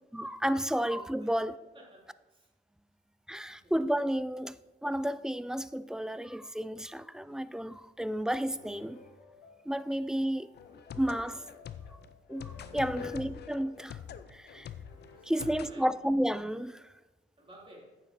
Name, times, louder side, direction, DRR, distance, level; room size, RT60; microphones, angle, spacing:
voice 1, 0.1-1.6 3.3-9.0 9.7-10.5 10.9-11.4 11.9-12.0 12.3-14.0 14.3-14.7 15.2-16.9, equal, 5° right, 0.3 m, -32 dB
voice 2, 1.2-1.5 1.7-2.5 3.5-3.7 12.9-13.1 15.2-15.9 17.4-17.9, right 1 dB, 25° right, 3.2 m, -54 dB
sound 1, 8.5-16.1, left 2 dB, 80° left, 2.2 m, -56 dB
sound 2, 10.5-15.7, left 9 dB, 55° left, 0.6 m, -44 dB
9.3 x 7.2 x 4.1 m
cardioid pair, 90°, 20 cm